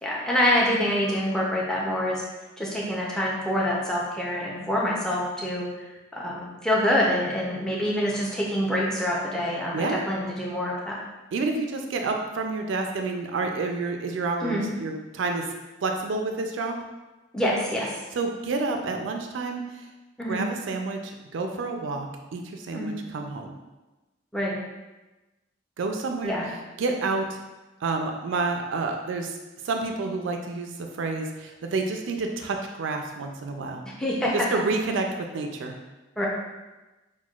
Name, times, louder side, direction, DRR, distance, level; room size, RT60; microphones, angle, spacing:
voice 1, 0.0-2.2 2.6-5.7 6.1-11.0 14.4-14.6 17.3-17.9 20.2-20.4 22.7-23.1 24.3-24.5 26.2-26.5 33.8-34.5 36.2-36.3, left 1 dB, 5° left, -5 dB, 0.5 m, -26 dB
voice 2, 9.7-10.0 11.3-15.4 15.8-16.8 18.1-19.6 20.3-23.5 25.8-26.4 26.8-27.3 27.8-29.3 29.6-30.7 31.0-33.8 34.3-35.1 35.3-35.8, right 3 dB, 75° right, 3 dB, 0.4 m, -29 dB
5.9 x 2.2 x 2.3 m, 1.1 s
head